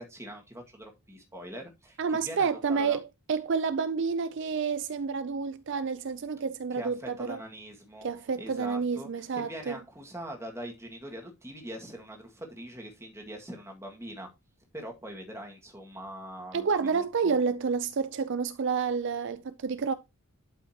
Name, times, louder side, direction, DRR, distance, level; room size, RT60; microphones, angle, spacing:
voice 1, 0.0-3.0 6.7-8.1 8.4-14.3 14.7-16.7 16.9-17.4, right 1 dB, 10° right, 1.9 m, -42 dB
voice 2, 2.0-7.4 8.0-9.8 16.5-19.9, right 5 dB, 55° right, 0.5 m, -29 dB
12.0 x 5.5 x 2.9 m
head